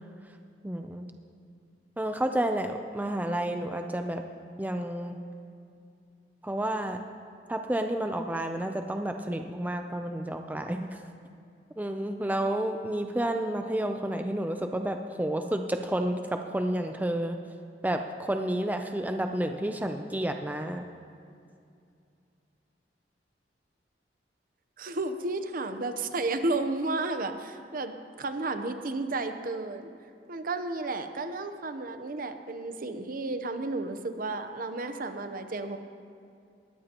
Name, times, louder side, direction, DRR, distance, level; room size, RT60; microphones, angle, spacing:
voice 1, 0.6-1.1 2.0-4.2 4.6-5.2 6.4-7.0 7.5-11.0 11.8-17.4 17.8-20.8, right 1 dB, 10° right, 5 dB, 0.5 m, -30 dB
voice 2, 24.8-27.9 28.2-29.9 30.3-35.8, right 2 dB, 55° right, 8 dB, 0.8 m, -32 dB
20.0 x 14.0 x 3.0 m, 2.4 s
head